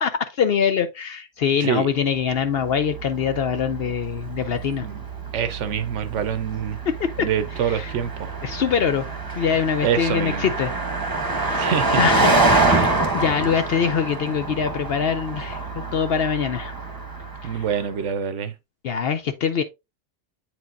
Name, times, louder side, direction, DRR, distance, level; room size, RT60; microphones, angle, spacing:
voice 1, 0.0-4.9 6.9-7.3 7.6-7.9 8.4-9.1 9.4-10.7 11.4-11.7 12.0-16.7 17.4-17.6 18.8-19.6, left 7 dB, 65° left, 0.8 m, -24 dB
Car passing by, 2.1-17.9, right 3 dB, 20° right, 0.9 m, -26 dB
voice 2, 5.3-6.8 7.2-8.3 9.8-10.5 11.5-12.0 17.4-18.5, right 8 dB, 85° right, 1.1 m, -25 dB
8.4 x 4.6 x 2.5 m
omnidirectional pair, 1.2 m